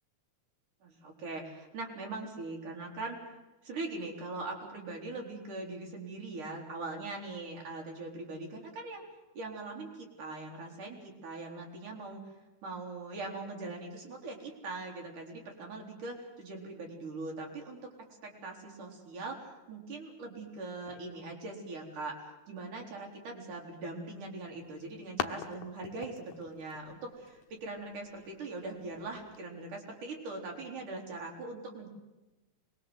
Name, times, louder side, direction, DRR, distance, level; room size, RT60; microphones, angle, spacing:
voice 1, 0.8-9.0 9.4-12.2 12.6-17.8 18.2-22.2 22.5-31.9, right 3 dB, 85° right, 1 dB, 5.4 m, -41 dB
sound 1, 24.3-29.4, left 9 dB, 75° left, 2.7 m, -44 dB
25.0 x 21.0 x 8.0 m, 1.1 s
omnidirectional pair, 3.5 m